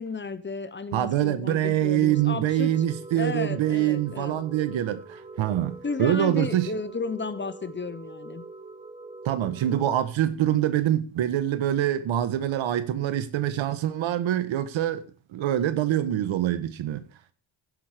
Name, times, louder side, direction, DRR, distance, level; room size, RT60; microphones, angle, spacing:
voice 1, 0.0-2.7 3.1-4.4 5.8-8.4, left 4 dB, 25° left, 1.0 m, -33 dB
voice 2, 0.9-6.7 9.2-15.0 15.3-17.1, right 12 dB, 75° right, 1.5 m, -25 dB
sound 1, 2.1-10.0, right 3 dB, 10° right, 1.2 m, -44 dB
16.5 x 6.1 x 5.1 m
cardioid pair, 100°, 47 cm